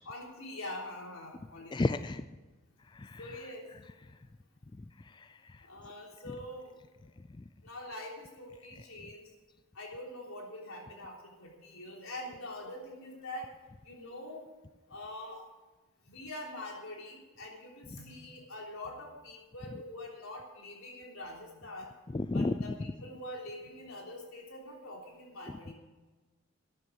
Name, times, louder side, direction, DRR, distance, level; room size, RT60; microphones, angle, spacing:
voice 1, 0.1-1.8 3.2-3.7 5.6-6.7 7.6-9.3 9.7-13.5 13.9-14.4 14.9-15.4 16.1-21.9 22.3-25.7, left 1 dB, 85° left, -1 dB, 3.6 m, -44 dB
voice 2, 1.7-2.2 2.9-3.2 4.8-5.6 7.4-7.5 22.1-22.6 25.5-25.6, left 2 dB, 20° left, 12 dB, 0.3 m, -33 dB
13.0 x 10.0 x 6.4 m, 1.2 s
head